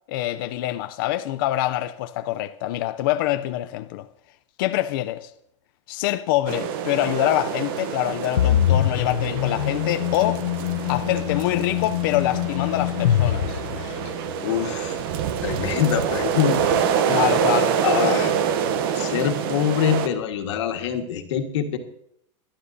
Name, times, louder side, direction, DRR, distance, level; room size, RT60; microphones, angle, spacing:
voice 1, 0.1-4.1 4.6-5.3 5.9-10.4 10.9-13.6 17.1-17.8, left 14 dB, 40° left, 0.5 m, -25 dB
sound 1, 6.5-20.1, right 8 dB, 45° right, 0.8 m, -26 dB
sound 2, 8.4-14.3, left 12 dB, 80° left, 0.7 m, -24 dB
voice 2, 13.8-14.1 14.4-15.0 15.4-16.9 17.8-18.3 18.9-21.8, left 9 dB, 65° left, 1.6 m, -24 dB
22.0 x 11.5 x 2.7 m
supercardioid pair, 170°, 16 cm